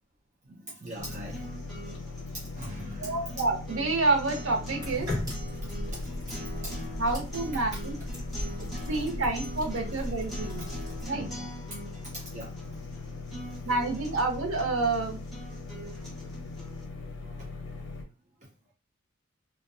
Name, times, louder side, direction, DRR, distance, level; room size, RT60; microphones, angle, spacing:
voice 1, 0.7-1.5 2.6-3.2 5.6-6.0 11.1-11.5 12.3-12.5 17.2-17.5, right 1 dB, 35° right, -4 dB, 0.5 m, -42 dB
sound 1, 0.8-16.8, right 1 dB, ahead, 0.7 m, -44 dB
sound 2, 1.0-18.0, left 3 dB, 65° left, 0.6 m, -40 dB
voice 2, 3.0-5.1 7.0-8.0 8.9-10.6 11.0-11.3 13.6-15.2, right 3 dB, 80° right, 2 dB, 0.7 m, -28 dB
sound 3, 4.8-11.1, left 1 dB, 20° right, 1.3 m, -37 dB
2.6 x 2.1 x 2.4 m, 0.30 s
head